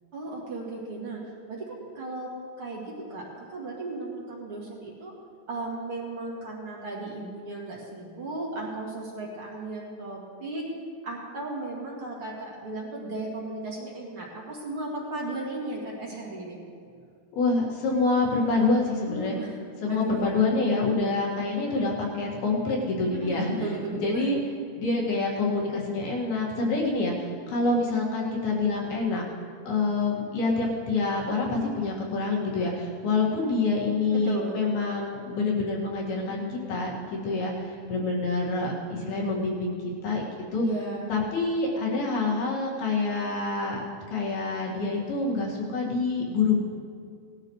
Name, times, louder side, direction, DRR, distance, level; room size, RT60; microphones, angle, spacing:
voice 1, 0.1-1.2 1.5-2.3 2.6-5.1 5.5-10.6 11.0-16.6 19.0-20.4 23.1-24.3 34.1-34.9 40.6-41.2, right 2 dB, 35° right, -4 dB, 2.7 m, -35 dB
voice 2, 17.4-19.4 19.8-29.2 29.7-39.8 40.0-43.8 44.1-46.6, left 3 dB, 65° left, -3 dB, 3.8 m, -27 dB
19.5 x 12.5 x 3.2 m, 2.2 s
omnidirectional pair, 4.9 m